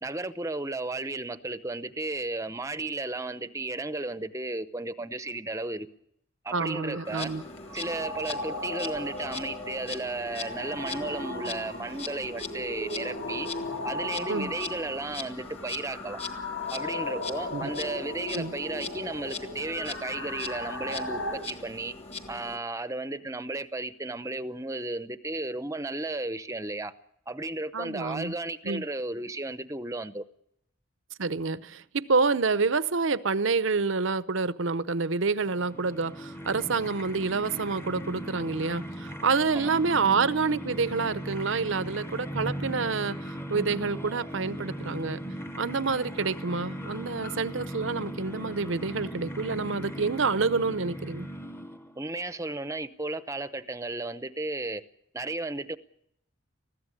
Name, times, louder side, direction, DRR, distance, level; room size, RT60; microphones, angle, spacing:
voice 1, 0.0-5.9 6.4-7.3 7.7-13.5 13.8-16.2 16.7-21.9 22.3-26.9 27.3-30.2 39.5-39.8 52.0-54.8 55.1-55.8, right 2 dB, 15° right, 0.7 m, -34 dB
sound 1, 6.5-21.4, left 2 dB, 70° left, 5.2 m, -37 dB
voice 2, 6.5-7.4 14.3-14.5 17.5-17.7 18.3-18.5 27.7-28.3 28.6-28.8 31.2-43.2 43.5-45.2 45.6-51.3, right 4 dB, 70° right, 0.8 m, -28 dB
Insect, 7.0-22.6, left 4 dB, 30° left, 1.7 m, -41 dB
sound 2, 35.4-52.0, equal, 10° left, 1.0 m, -38 dB
20.5 x 15.5 x 9.9 m
head